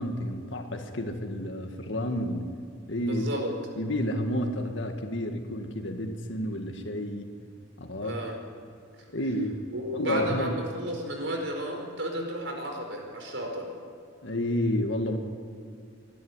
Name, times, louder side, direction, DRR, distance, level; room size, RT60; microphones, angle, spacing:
voice 1, 0.0-2.5 2.9-3.4 3.8-7.3 7.8-8.2 9.1-9.6 9.9-10.6 14.2-15.2, left 1 dB, 85° left, 4 dB, 1.9 m, -30 dB
voice 2, 3.0-3.6 8.0-8.3 9.7-13.7, right 1 dB, 85° right, 2 dB, 4.9 m, -33 dB
25.5 x 12.0 x 9.8 m, 2.4 s
head